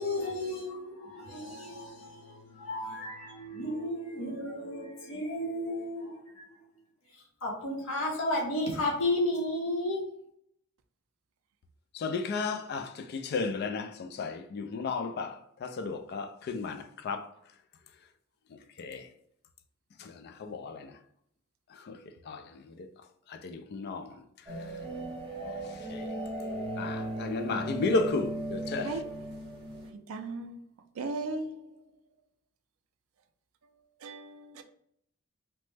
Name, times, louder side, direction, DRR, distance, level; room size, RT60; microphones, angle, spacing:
voice 1, 0.0-6.4 7.4-10.0, left 1 dB, 65° left, 0.8 m, -33 dB
voice 2, 12.0-15.3 15.6-16.8 17.0-17.2 18.8-19.0 20.4-20.8 21.9-22.0 22.3-22.4 23.4-24.1 25.9-26.1 26.8-28.9, left 3 dB, 50° left, 0.3 m, -33 dB
sound 1, 24.5-29.9, right 1 dB, 20° right, 0.8 m, -36 dB
voice 3, 30.1-30.6 31.0-31.5 34.0-34.6, right 3 dB, 75° right, 0.3 m, -36 dB
3.1 x 2.0 x 3.2 m
head